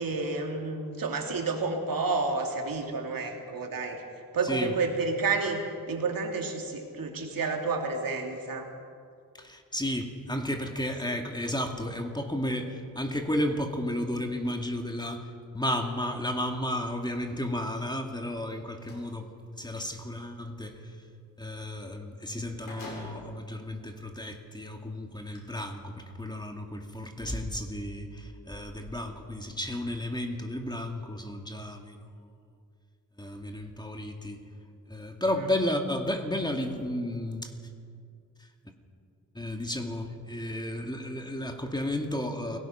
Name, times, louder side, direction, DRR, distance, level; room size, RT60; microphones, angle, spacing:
voice 1, 0.0-4.0 4.3-8.7 35.3-35.5, right 3 dB, 80° right, 2 dB, 3.0 m, -30 dB
voice 2, 9.3-15.3 15.5-19.3 19.6-20.9 21.4-32.1 33.2-34.4 34.9-37.5 39.3-42.6, left 1 dB, 10° left, 3 dB, 2.5 m, -33 dB
sound 1, 18.2-19.1 21.9-22.0 22.3-23.4 24.1-24.2 25.2-25.4, left 1 dB, 70° left, 8.0 m, -46 dB
29.5 x 18.0 x 5.9 m, 2.3 s
cardioid pair, 80°, 34 cm